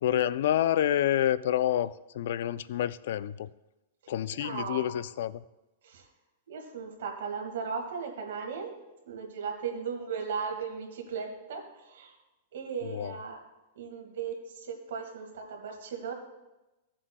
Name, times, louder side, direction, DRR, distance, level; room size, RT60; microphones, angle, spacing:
voice 1, 0.0-3.5 4.1-5.4 12.8-13.1, left 11 dB, 70° left, 17 dB, 0.3 m, -28 dB
voice 2, 4.3-5.0 5.8-6.0 6.5-8.8 9.1-12.1 12.5-13.4 13.8-16.1, right 6 dB, 75° right, 3 dB, 1.8 m, -37 dB
15.5 x 7.4 x 2.2 m, 1.0 s
supercardioid pair, 150°, 0 cm